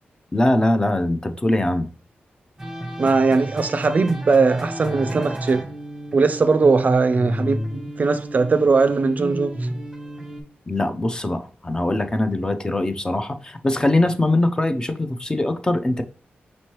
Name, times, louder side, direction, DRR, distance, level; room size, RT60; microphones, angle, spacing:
voice 1, 0.3-1.9 10.7-16.0, left 1 dB, 20° left, 0.4 m, -22 dB
sound 1, 2.6-10.4, right 1 dB, 10° right, 0.9 m, -31 dB
voice 2, 3.0-5.7 6.1-9.6, right 4 dB, 45° right, 0.4 m, -19 dB
5.2 x 3.1 x 2.9 m
cardioid pair, 80°, 4 cm